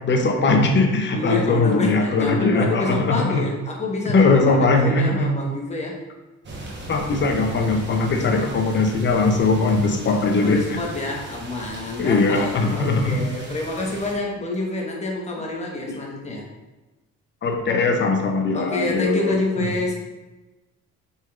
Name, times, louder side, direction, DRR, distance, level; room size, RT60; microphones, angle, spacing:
voice 1, 0.0-3.5 4.1-5.3 6.9-10.8 12.0-13.3 15.9-16.0 17.4-19.4, left 3 dB, 40° left, 3 dB, 0.7 m, -20 dB
voice 2, 1.1-6.0 8.1-8.5 10.4-16.4 18.5-19.9, left 2 dB, 20° left, -1 dB, 1.1 m, -27 dB
sound 1, 6.4-14.2, right 1 dB, 35° right, 1.1 m, -37 dB
5.3 x 3.6 x 2.4 m, 1.1 s
cardioid pair, 90°, 30 cm